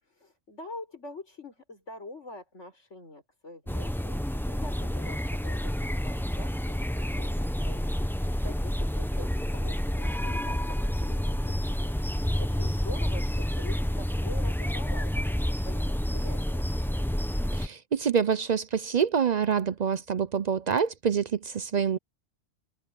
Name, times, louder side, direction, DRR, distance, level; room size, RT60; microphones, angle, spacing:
voice 1, 0.0-15.4 15.6-16.7, left 2 dB, 75° left, 6.1 m, -45 dB
sound 1, 3.7-17.7, equal, ahead, 0.6 m, -29 dB
voice 2, 17.5-22.0, right 7 dB, 50° right, 0.5 m, -26 dB
omnidirectional pair, 1.2 m